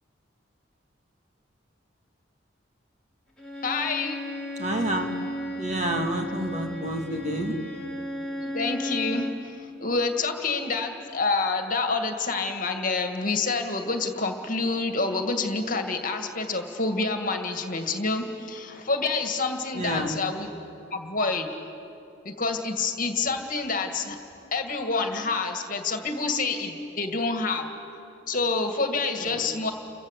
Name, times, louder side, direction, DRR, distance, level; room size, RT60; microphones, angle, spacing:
Bowed string instrument, 3.4-9.5, left 1 dB, 5° left, 2.8 m, -34 dB
voice 1, 3.6-4.2 8.4-20.5 20.9-21.5 22.2-24.2 24.5-27.7 28.3-29.7, left 3 dB, 45° left, 5 dB, 2.1 m, -28 dB
voice 2, 4.6-5.2 5.6-7.6 19.7-20.1 29.3-29.4, right 1 dB, 35° right, 3 dB, 2.4 m, -29 dB
30.0 x 23.0 x 8.2 m, 2.9 s
head